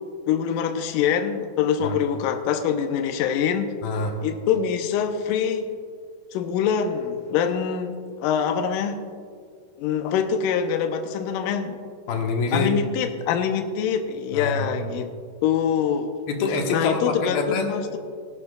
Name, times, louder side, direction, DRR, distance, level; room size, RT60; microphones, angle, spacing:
voice 1, 0.3-3.7 4.2-5.7 6.3-9.0 9.8-11.8 12.5-15.1 15.4-16.1 16.7-18.0, left 8 dB, 85° left, 5 dB, 1.9 m, -24 dB
voice 2, 3.8-4.2 12.1-12.7 14.3-14.7 16.3-17.7, left 3 dB, 70° left, 2 dB, 2.9 m, -25 dB
19.0 x 11.5 x 2.4 m, 2.1 s
omnidirectional pair, 4.6 m